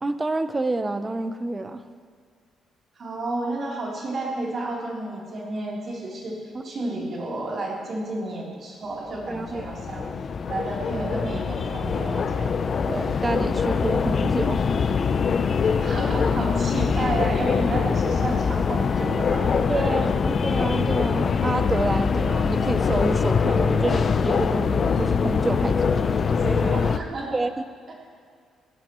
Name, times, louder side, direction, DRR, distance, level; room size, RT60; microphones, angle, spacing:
voice 1, 0.0-1.8 6.5-6.7 9.3-9.6 12.9-14.7 19.7-26.2 27.3-27.5, right 2 dB, 15° right, 10 dB, 0.7 m, -28 dB
voice 2, 3.0-10.1 10.5-12.5 15.6-20.1 26.3-27.4, right 2 dB, 40° right, -4 dB, 3.5 m, -31 dB
sound 1, 9.1-27.0, left 5 dB, 35° left, 0.6 m, -23 dB
19.5 x 17.5 x 3.1 m, 2.1 s
cardioid pair, 155°, 0 cm